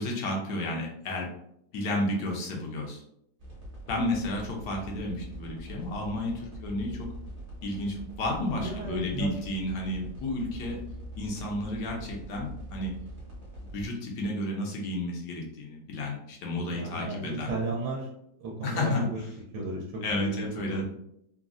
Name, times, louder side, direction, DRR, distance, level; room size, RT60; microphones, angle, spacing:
voice 1, 0.0-1.3 1.7-3.0 3.9-7.1 7.6-10.8 11.2-13.0 13.7-17.5 18.6-19.1 20.0-20.8, left 1 dB, 85° left, 0 dB, 1.3 m, -32 dB
sound 1, 3.4-13.9, right 1 dB, 45° right, 0.5 m, -43 dB
voice 2, 8.6-9.3 16.7-18.1 18.4-19.2 19.5-20.8, right 2 dB, 85° right, -2 dB, 1.2 m, -34 dB
3.6 x 2.0 x 2.4 m, 0.75 s
omnidirectional pair, 1.8 m